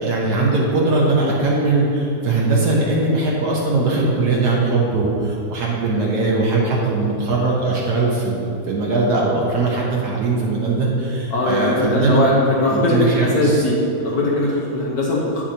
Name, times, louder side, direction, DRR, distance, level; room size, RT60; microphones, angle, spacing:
voice 1, 0.0-12.3 12.7-13.6, right 3 dB, 75° right, -4 dB, 1.4 m, -20 dB
voice 2, 11.3-15.4, left 1 dB, 70° left, -5 dB, 1.5 m, -19 dB
8.5 x 7.6 x 2.8 m, 2.7 s
omnidirectional pair, 1.7 m